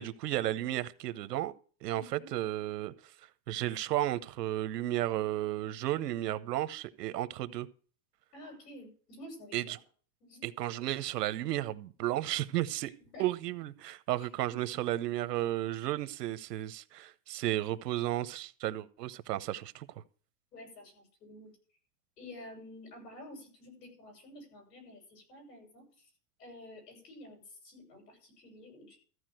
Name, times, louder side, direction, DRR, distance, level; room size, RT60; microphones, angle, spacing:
voice 1, 0.0-1.5 1.8-2.9 3.5-7.7 9.5-9.8 10.4-12.9 13.2-19.9, right 14 dB, 85° right, 1.0 m, -33 dB
voice 2, 1.9-2.3 8.3-9.8 10.2-10.4 13.1-13.2 14.7-14.8 20.5-21.5 22.2-25.8 26.4-29.0, left 1 dB, 90° left, 7.0 m, -50 dB
14.0 x 4.8 x 7.6 m
supercardioid pair, 155°, 47 cm